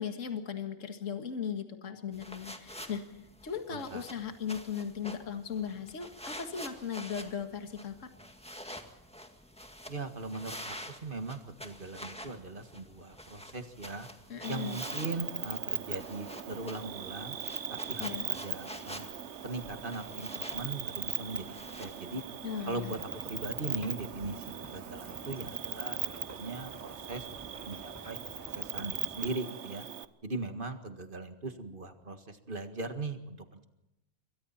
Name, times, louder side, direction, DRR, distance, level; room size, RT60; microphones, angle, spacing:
voice 1, 0.0-3.2 3.4-8.1 14.3-14.8 18.0-18.3 22.4-22.9, left 7 dB, 55° left, 6 dB, 2.1 m, -37 dB
sound 1, 2.1-22.0, equal, 5° left, 1.8 m, -48 dB
voice 2, 3.7-4.0 9.9-14.1 14.5-17.4 17.7-19.1 19.4-22.2 22.7-23.0 23.2-26.0 26.3-27.3 27.7-29.8 30.2-33.7, right 3 dB, 35° right, 7 dB, 1.9 m, -39 dB
Cricket, 14.4-30.0, right 8 dB, 55° right, 1.1 m, -39 dB
sound 2, 17.6-29.4, right 1 dB, 10° right, 1.2 m, -53 dB
27.5 x 23.5 x 4.3 m, 0.93 s
omnidirectional pair, 1.6 m